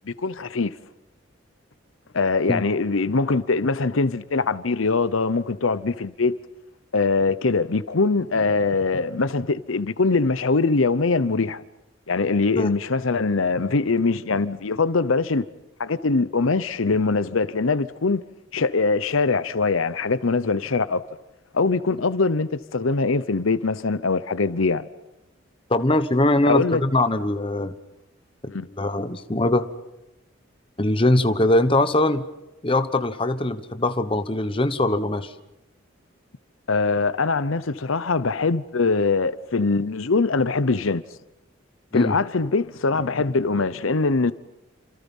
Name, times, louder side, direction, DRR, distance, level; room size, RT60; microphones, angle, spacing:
voice 1, 0.1-0.8 2.1-6.3 6.9-11.6 12.1-15.4 15.8-18.2 18.5-21.0 21.5-24.9 26.4-26.8 28.5-28.7 36.7-41.0 41.9-44.3, left 4 dB, 85° left, 0.8 m, -22 dB
voice 2, 25.7-27.7 28.4-29.7 30.8-32.2 32.6-35.3 41.9-42.2, left 1 dB, 25° left, 1.1 m, -22 dB
29.5 x 26.5 x 5.5 m
head